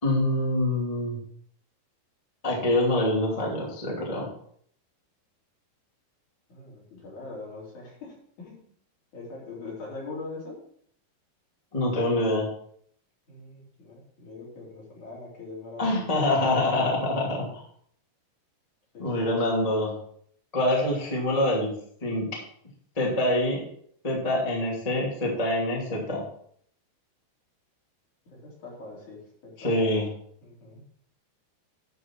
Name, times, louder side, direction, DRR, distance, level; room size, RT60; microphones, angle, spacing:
voice 1, 0.0-1.2 2.4-4.3 11.7-12.5 15.8-17.6 19.0-19.9 20.5-21.7 22.0-22.3 23.0-23.6 24.0-26.2 29.6-30.1, left 1 dB, 10° left, -3 dB, 1.7 m, -25 dB
voice 2, 6.5-8.6 9.1-10.6 13.3-16.5 18.9-19.3 28.3-30.0 30.4-30.8, left 3 dB, 50° left, -5 dB, 5.0 m, -42 dB
12.0 x 6.1 x 4.5 m, 0.64 s
omnidirectional pair, 4.7 m